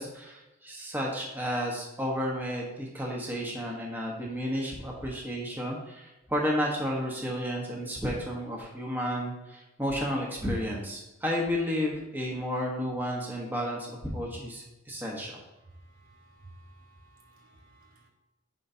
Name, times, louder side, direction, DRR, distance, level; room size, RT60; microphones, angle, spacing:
voice 1, 0.0-15.4, equal, 10° right, -3 dB, 1.2 m, -32 dB
voice 2, 15.8-18.1, right 1 dB, 80° right, -2 dB, 2.2 m, -55 dB
10.5 x 4.7 x 2.8 m, 1.0 s
head